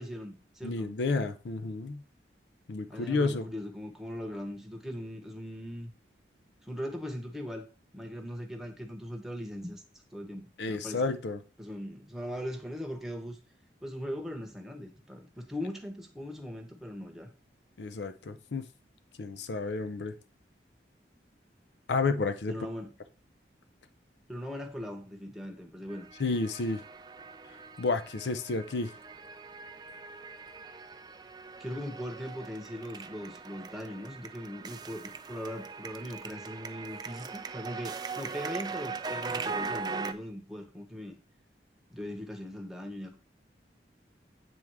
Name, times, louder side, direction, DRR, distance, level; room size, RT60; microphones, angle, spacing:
voice 1, 0.0-0.9 2.9-5.9 6.6-7.6 7.9-9.8 10.1-11.1 11.6-13.4 13.8-17.3 22.5-22.9 24.3-26.1 31.6-41.2 41.9-43.2, equal, ahead, 0.9 m, -40 dB
voice 2, 0.6-2.0 2.7-3.5 10.6-11.4 17.8-18.6 19.2-20.1 21.9-22.5 26.2-26.8 27.8-28.9, left 3 dB, 80° left, 0.5 m, -31 dB
sound 1, 25.9-40.1, right 4 dB, 25° right, 0.3 m, -40 dB
7.8 x 3.5 x 4.6 m
head